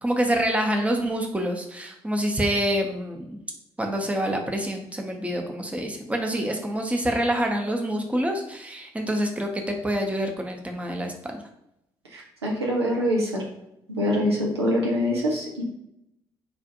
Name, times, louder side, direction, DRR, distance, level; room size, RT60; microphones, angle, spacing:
voice 1, 0.0-3.4 3.8-11.4, equal, 10° right, 3 dB, 0.6 m, -26 dB
voice 2, 12.1-13.4 13.9-15.6, equal, 85° right, -3 dB, 0.5 m, -24 dB
4.7 x 2.4 x 2.6 m, 0.83 s
figure-of-eight pair, 40°, 13 cm